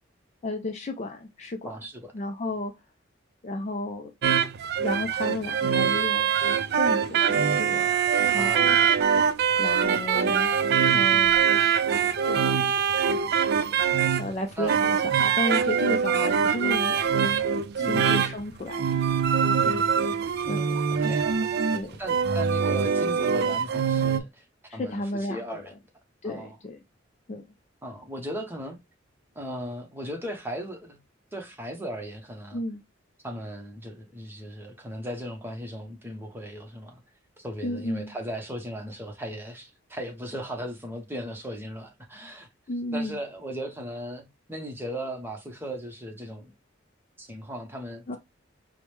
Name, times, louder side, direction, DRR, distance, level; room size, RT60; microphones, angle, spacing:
voice 1, 0.4-1.7 2.1-2.7 3.4-4.1 4.8-6.4 6.8-8.0 8.3-8.9 9.6-10.6 10.9-11.8 12.3-12.5 14.2-17.4 17.8-19.0 20.5-20.8 21.7-22.0 24.7-25.4 26.2-26.8 27.3-27.5 32.5-32.8 37.6-38.1 42.7-43.2 48.1-48.2, left 2 dB, 35° left, 0.4 m, -33 dB
voice 2, 1.6-2.1 8.3-8.9 10.9-11.3 14.6-14.8 17.8-18.2 19.6-20.0 20.9-21.3 22.0-24.4 24.7-25.8 26.2-26.6 27.8-28.8 29.3-31.0 31.3-32.6 33.2-37.0 37.4-42.5 42.9-46.5 47.2-48.2, equal, 10° right, 0.8 m, -37 dB
sound 1, 4.2-24.2, right 7 dB, 55° right, 0.3 m, -23 dB
4.6 x 2.1 x 3.2 m
head